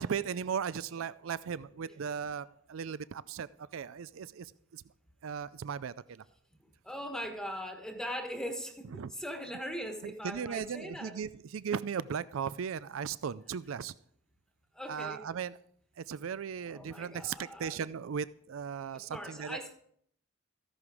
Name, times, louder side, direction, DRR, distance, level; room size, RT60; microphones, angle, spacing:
voice 1, 0.0-4.8 5.2-6.2 8.9-9.1 10.0-13.9 14.9-15.6 16.0-19.6, right 7 dB, 90° right, 0.4 m, -37 dB
voice 2, 6.8-11.2 14.7-15.2 16.7-17.8 18.9-19.7, equal, 5° left, 1.3 m, -40 dB
15.0 x 11.0 x 4.9 m
head